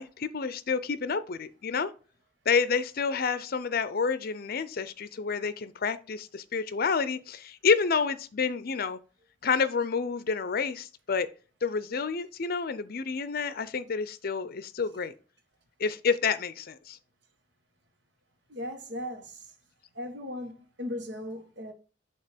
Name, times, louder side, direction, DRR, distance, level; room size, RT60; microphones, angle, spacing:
voice 1, 0.0-1.9 2.5-9.0 9.4-11.3 11.6-15.1 15.8-17.0, left 5 dB, 55° left, 0.5 m, -29 dB
voice 2, 18.5-19.5 19.9-21.7, left 1 dB, 65° right, 1.5 m, -37 dB
7.0 x 3.0 x 5.8 m
head